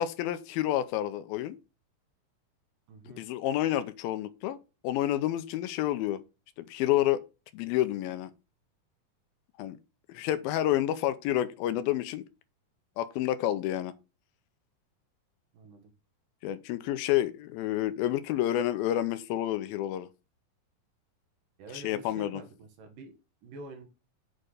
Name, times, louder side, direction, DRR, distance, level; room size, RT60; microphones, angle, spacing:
voice 1, 0.0-1.6 3.1-4.6 4.8-6.2 6.6-7.2 7.5-8.3 9.6-9.8 10.1-12.2 13.0-13.9 16.4-20.1 21.7-22.4, left 13 dB, 80° left, 2.4 m, -29 dB
voice 2, 2.9-3.3 15.5-15.9 21.6-23.1 23.4-23.9, right 3 dB, 70° right, 2.9 m, -47 dB
7.6 x 4.4 x 4.8 m
omnidirectional pair, 4.3 m